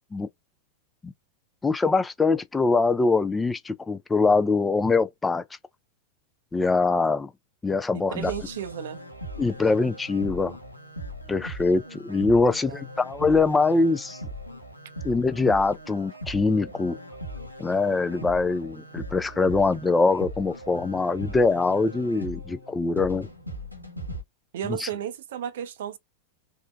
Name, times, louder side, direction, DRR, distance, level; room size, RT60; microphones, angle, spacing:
voice 1, 1.6-5.4 6.5-7.3 7.6-8.3 9.4-10.6 11.3-14.2 15.0-17.0 17.6-23.3 24.8-24.9, left 3 dB, 10° left, 0.3 m, -23 dB
voice 2, 7.9-9.0 12.3-12.8 24.5-26.0, right 9 dB, 60° right, 0.5 m, -34 dB
sound 1, 8.2-24.2, equal, 90° left, 0.7 m, -39 dB
3.7 x 2.0 x 2.4 m
figure-of-eight pair, 90°, 0 cm